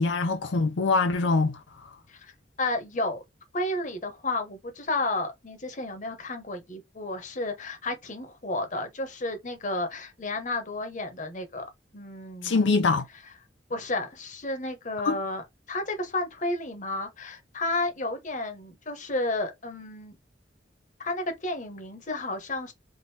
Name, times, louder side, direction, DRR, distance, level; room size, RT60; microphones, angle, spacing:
voice 1, 0.0-1.6 12.4-13.0 15.0-15.2, left 3 dB, 90° left, 0.5 m, -23 dB
voice 2, 2.6-3.2 3.5-11.6 11.9-12.8 13.7-20.2 21.0-22.7, left 2 dB, 45° left, 0.9 m, -32 dB
3.5 x 2.5 x 2.7 m
head